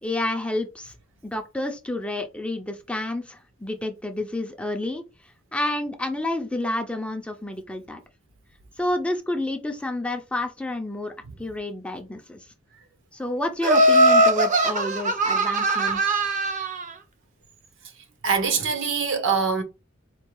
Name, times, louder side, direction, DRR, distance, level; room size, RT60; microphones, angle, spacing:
voice 1, 0.0-0.9 1.2-5.0 5.5-8.0 8.8-11.1 11.4-12.4 13.1-16.3, left 1 dB, 5° left, 0.4 m, -29 dB
Laughter, 13.6-16.8, right 1 dB, 40° right, 0.6 m, -20 dB
voice 2, 18.2-19.6, right 5 dB, 65° right, 0.8 m, -23 dB
4.4 x 2.3 x 3.1 m
head